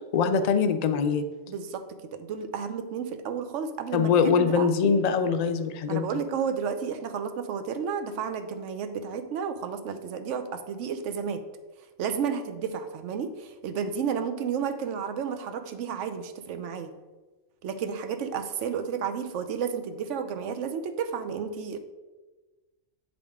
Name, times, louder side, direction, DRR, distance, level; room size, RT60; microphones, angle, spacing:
voice 1, 0.1-1.3 3.9-6.1, left 6 dB, 70° left, 9 dB, 0.4 m, -23 dB
voice 2, 1.5-1.8 2.1-4.7 5.9-11.4 12.0-16.9 17.6-21.8, right 7 dB, 80° right, 9 dB, 1.0 m, -32 dB
8.4 x 5.0 x 3.6 m, 1.2 s
omnidirectional pair, 1.3 m